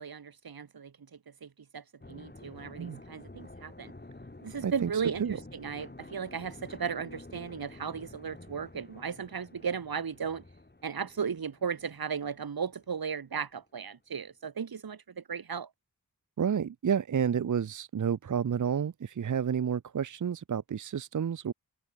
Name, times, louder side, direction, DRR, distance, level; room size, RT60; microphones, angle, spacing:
voice 1, 0.0-3.9 4.4-10.4 10.8-15.7, right 6 dB, 90° right, 2.1 m, -36 dB
sound 1, 2.0-13.4 13.8-13.9, left 2 dB, 30° left, 4.6 m, -50 dB
voice 2, 4.6-5.4 16.4-21.5, right 7 dB, 60° right, 0.7 m, -30 dB
wide cardioid pair, 55°, 35 cm